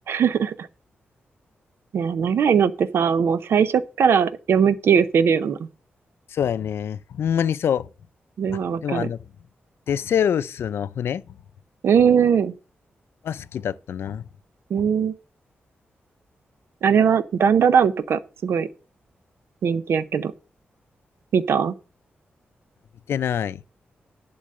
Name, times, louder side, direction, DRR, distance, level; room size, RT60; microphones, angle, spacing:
voice 1, 0.1-0.7 1.9-5.6 8.4-9.1 11.8-12.5 14.7-15.1 16.8-18.7 19.6-20.3 21.3-21.7, right 7 dB, 80° right, 0.7 m, -20 dB
voice 2, 6.3-7.9 8.5-9.2 9.9-11.2 13.2-14.2 23.1-23.6, left 8 dB, 85° left, 0.4 m, -25 dB
11.0 x 4.0 x 7.5 m
cardioid pair, 95°, 4 cm